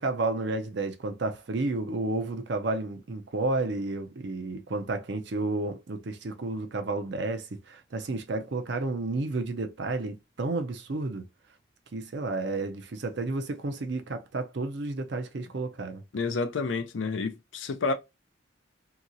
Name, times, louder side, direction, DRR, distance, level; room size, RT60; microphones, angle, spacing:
voice 1, 0.0-11.2 11.9-16.0, right 2 dB, 55° right, 0.5 m, -31 dB
voice 2, 16.1-17.9, left 4 dB, 65° left, 0.5 m, -29 dB
2.8 x 2.8 x 2.5 m
head